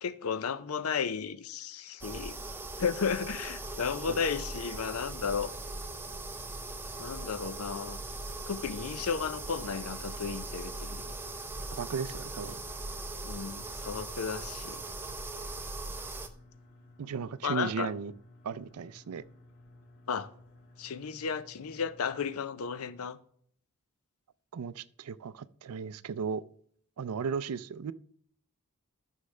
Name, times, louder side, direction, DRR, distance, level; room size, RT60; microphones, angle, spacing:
voice 1, 0.0-2.4 2.8-5.5 7.0-8.0 8.5-11.0 13.2-14.8 17.4-17.9 20.1-20.3 20.8-23.2, left 6 dB, 75° left, 0.6 m, -34 dB
sound 1, 2.0-16.3, right 2 dB, 10° right, 0.5 m, -40 dB
sound 2, 3.5-22.3, left 1 dB, 40° left, 3.1 m, -57 dB
voice 2, 11.7-12.6 17.0-18.1 18.4-19.2 24.5-26.4 27.0-27.9, right 6 dB, 80° right, 0.4 m, -36 dB
13.0 x 6.4 x 3.3 m
head